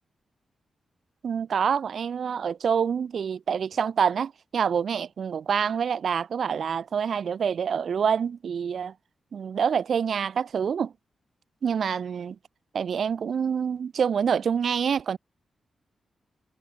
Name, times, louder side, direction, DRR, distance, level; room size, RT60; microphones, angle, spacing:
voice 1, 1.2-8.9 9.3-10.9 11.6-12.4 12.7-15.2, right 7 dB, 55° right, 1.9 m, -26 dB
wide cardioid pair, 175°, 0 cm